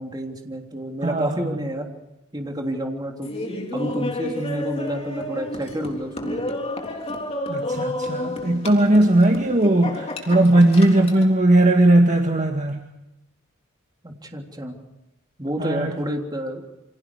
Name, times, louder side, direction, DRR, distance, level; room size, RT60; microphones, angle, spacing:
voice 1, 0.0-2.0 2.3-3.3 3.7-6.5 14.0-14.8 15.4-16.6, equal, 20° right, 2 dB, 3.4 m, -29 dB
voice 2, 1.0-1.5 7.5-12.8 15.6-16.0, right 1 dB, 35° right, 3 dB, 1.8 m, -18 dB
Laughter, 3.2-11.3, left 1 dB, 30° left, 3.6 m, -31 dB
29.0 x 25.5 x 4.9 m, 0.92 s
head